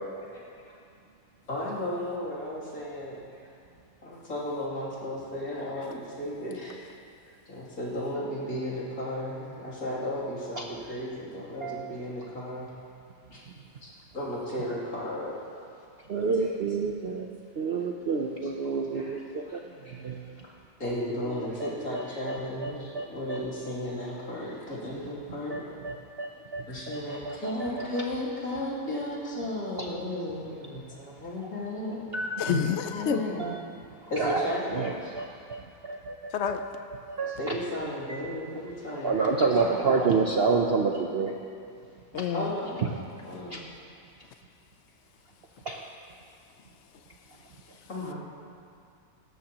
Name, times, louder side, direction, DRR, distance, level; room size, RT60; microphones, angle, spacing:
voice 1, 1.5-3.2 4.0-6.8 7.5-12.7 13.3-13.4 13.8-15.3 19.5-19.6 19.8-19.9 20.8-25.6 26.7-32.0 32.9-33.5 34.1-35.1 37.4-39.9 42.3-43.0 43.2-43.6 47.9-48.1, left 1 dB, 55° left, -7 dB, 3.3 m, -34 dB
voice 2, 16.1-20.4 21.2-23.4 24.2-24.4 25.5-28.0 29.8-29.9 32.1-32.6 33.4-33.5 34.0-36.3 37.1-37.6 38.1-38.2 39.0-41.3 42.8-42.9 43.5-43.6 45.7-45.9, right 4 dB, 60° right, 1 dB, 0.6 m, -30 dB
voice 3, 32.4-33.2 36.3-36.6 42.1-42.5, left 8 dB, 85° left, 7 dB, 0.6 m, -28 dB
18.0 x 13.5 x 3.0 m, 2.4 s
omnidirectional pair, 1.9 m